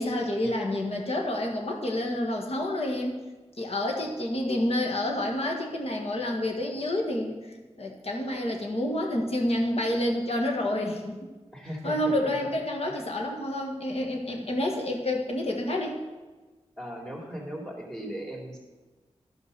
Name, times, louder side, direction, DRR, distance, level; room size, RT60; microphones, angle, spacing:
voice 1, 0.0-3.2 3.6-7.4 7.8-11.3 11.8-16.0, left 1 dB, 60° left, 1 dB, 1.6 m, -28 dB
voice 2, 11.5-12.2 12.9-13.2 16.8-18.6, equal, 5° left, -2 dB, 2.6 m, -38 dB
12.5 x 5.6 x 6.7 m, 1.2 s
wide cardioid pair, 85°, 12 cm